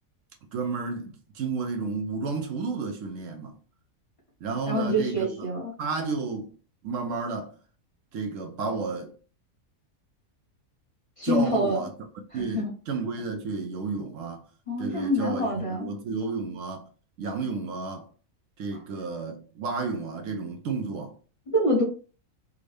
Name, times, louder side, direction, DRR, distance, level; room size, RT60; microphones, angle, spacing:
voice 1, 0.5-3.6 4.4-5.4 5.8-6.5 6.8-7.5 8.1-9.1 11.2-11.9 12.3-14.5 14.8-16.9 17.2-18.1 18.6-21.2, right 4 dB, 70° right, 0.9 m, -32 dB
voice 2, 4.7-5.7 11.2-11.8 12.3-12.7 14.7-16.0 21.5-21.8, equal, 30° left, 0.8 m, -26 dB
3.5 x 2.1 x 3.2 m
omnidirectional pair, 1.5 m